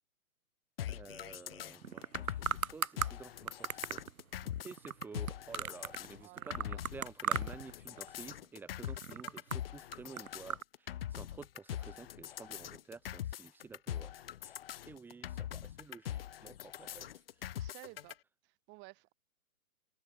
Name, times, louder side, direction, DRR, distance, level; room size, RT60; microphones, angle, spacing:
sound 1, 0.8-18.1, left 11 dB, 40° left, 0.8 m, -43 dB
voice 1, 0.9-4.0 4.6-14.1 14.4-14.6 14.9-17.1, right 4 dB, 5° right, 1.0 m, -51 dB
sound 2, 1.8-3.1 3.5-6.1 6.4-7.7 8.0-8.4 8.8-10.6, right 7 dB, 70° right, 1.9 m, -37 dB
voice 2, 6.2-6.8 16.9-17.1 17.5-18.2 18.4-19.1, right 24 dB, 25° right, 5.2 m, -55 dB
hypercardioid pair, 140°, 44 cm